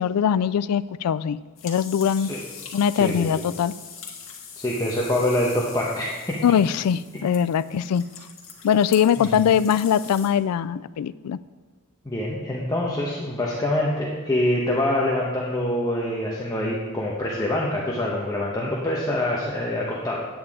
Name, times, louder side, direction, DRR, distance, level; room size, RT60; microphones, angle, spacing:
voice 1, 0.0-1.4 1.6-2.3 2.7-3.7 6.4-8.0 8.6-11.4, left 8 dB, 85° left, 16 dB, 0.3 m, -21 dB
sound 1, 1.6-10.3, left 7 dB, 65° left, 1.6 m, -42 dB
voice 2, 4.6-6.1 9.2-9.3 12.0-20.2, left 1 dB, 15° left, -5 dB, 1.0 m, -25 dB
9.5 x 8.8 x 3.6 m, 1.3 s
head